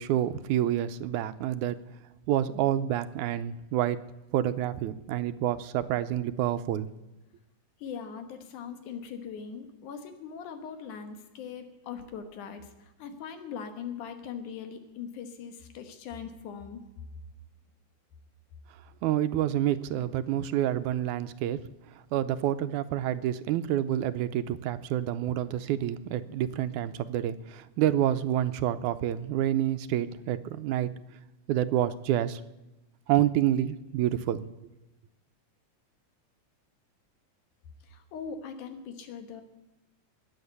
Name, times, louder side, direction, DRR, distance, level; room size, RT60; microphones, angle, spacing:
voice 1, 0.0-1.8 2.3-4.0 4.3-6.9 19.0-21.6 22.1-30.9 31.5-32.4 33.1-34.5, right 12 dB, 90° right, 12 dB, 2.1 m, -28 dB
voice 2, 7.8-16.8 37.9-39.4, left 6 dB, 85° left, 7 dB, 2.8 m, -41 dB
20.0 x 7.3 x 8.2 m, 1.0 s
omnidirectional pair, 3.4 m